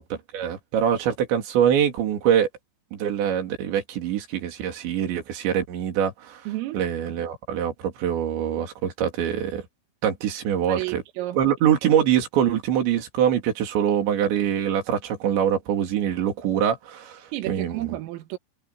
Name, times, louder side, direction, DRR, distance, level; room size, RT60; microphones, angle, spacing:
voice 1, 0.3-2.5 2.9-6.4 6.7-9.6 10.0-11.0 11.4-17.2 17.5-18.0, right 9 dB, 65° right, 5.1 m, -24 dB
voice 2, 6.5-6.9 10.7-11.4 17.3-18.4, right 16 dB, 90° right, 4.0 m, -31 dB
omnidirectional pair, 5.8 m